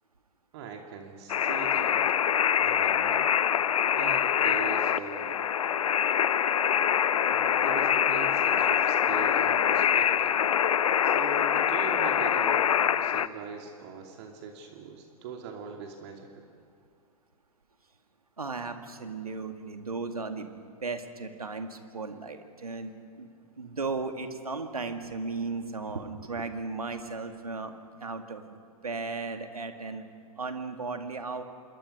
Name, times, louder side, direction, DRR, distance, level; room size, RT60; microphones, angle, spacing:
voice 1, 0.5-2.0 2.6-3.2 3.9-5.4 7.3-10.3 11.0-16.4, right 6 dB, 45° right, 2 dB, 2.5 m, -41 dB
sound 1, 1.3-13.3, left 9 dB, 70° left, 0.7 m, -25 dB
voice 2, 18.4-20.5 20.8-23.3 23.6-27.7 28.0-28.6 28.8-30.0 30.4-31.4, right 4 dB, 85° right, 6 dB, 2.1 m, -35 dB
27.0 x 23.0 x 5.4 m, 2.4 s
figure-of-eight pair, 110°, 19 cm